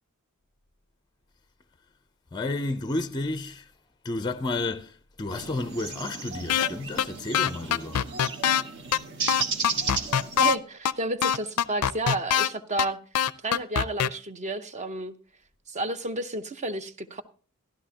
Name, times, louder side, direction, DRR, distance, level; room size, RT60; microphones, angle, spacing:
voice 1, 2.3-3.7 4.0-8.1, left 2 dB, 20° left, 0.5 m, -31 dB
sound 1, 5.3-10.5, right 5 dB, 55° right, 1.4 m, -34 dB
sound 2, 6.5-6.7 7.0-7.1 7.3-8.6 8.9-9.0 9.3-10.6 10.9-11.0 11.2-12.5 12.8-12.9 13.1-14.1, left 9 dB, 80° left, 0.4 m, -22 dB
voice 2, 10.4-13.0 13.4-15.1 15.7-17.2, right 2 dB, 30° right, 0.7 m, -31 dB
13.5 x 12.0 x 2.8 m
head